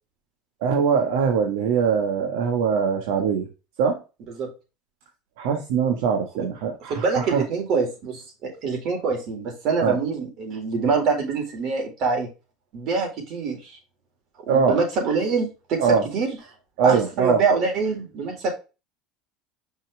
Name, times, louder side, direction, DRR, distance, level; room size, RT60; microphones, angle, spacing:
voice 1, 0.6-3.5 3.8-4.0 5.4-7.4 9.8-10.0 14.5-14.8 15.8-16.1 16.8-17.4, right 6 dB, 80° right, 2 dB, 1.5 m, -22 dB
voice 2, 6.9-12.3 12.7-13.8 14.5-15.8 16.1-16.3 16.8-18.5, right 4 dB, 55° right, 2 dB, 3.9 m, -25 dB
6.2 x 5.6 x 3.3 m, 0.29 s
supercardioid pair, 115°, 0 cm